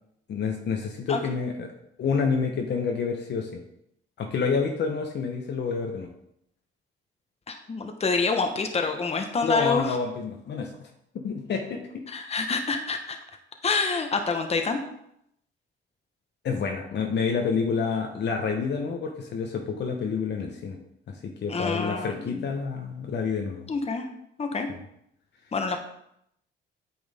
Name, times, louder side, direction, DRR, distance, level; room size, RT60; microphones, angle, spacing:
voice 1, 0.3-1.7 2.0-3.6 4.2-6.1 9.4-10.9 11.2-12.0 16.4-20.8 21.1-23.7 24.7-24.8, left 5 dB, 60° left, 2 dB, 1.1 m, -28 dB
voice 2, 7.5-10.0 12.1-13.2 13.6-14.8 21.5-22.5 23.7-24.1 24.4-24.7 25.5-25.8, left 4 dB, 30° left, 5 dB, 1.1 m, -27 dB
8.8 x 6.2 x 3.6 m, 0.76 s
cardioid pair, 90°, 20 cm